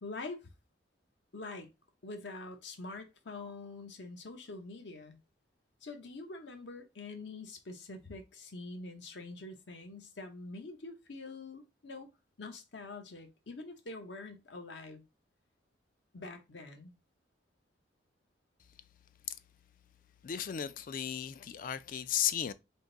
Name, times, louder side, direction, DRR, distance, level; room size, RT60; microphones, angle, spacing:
voice 1, 0.0-0.5 1.3-1.7 2.0-5.2 5.8-12.1 12.4-15.0 16.1-16.9, left 3 dB, 65° left, 0.8 m, -45 dB
voice 2, 20.2-22.5, left 9 dB, 45° left, 0.3 m, -34 dB
3.7 x 2.6 x 3.8 m
head